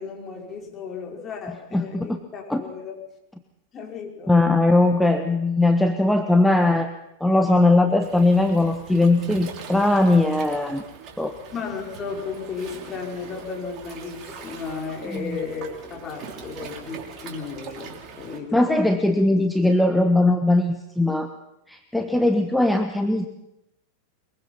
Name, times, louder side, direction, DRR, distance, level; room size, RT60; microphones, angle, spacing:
voice 1, 0.0-3.0 3.7-4.4 4.8-4.9 11.5-18.7, left 5 dB, 25° left, 0 dB, 5.1 m, -34 dB
voice 2, 1.7-2.2 2.5-2.6 4.3-6.9 7.2-10.8 11.2-11.3 15.1-15.4 18.5-21.3 21.7-23.3, left 2 dB, 5° left, 6 dB, 1.3 m, -20 dB
Waves surf, 8.0-18.4, right 5 dB, 35° right, 3.5 m, -41 dB
23.0 x 22.0 x 5.7 m, 0.87 s
figure-of-eight pair, 90°, 0 cm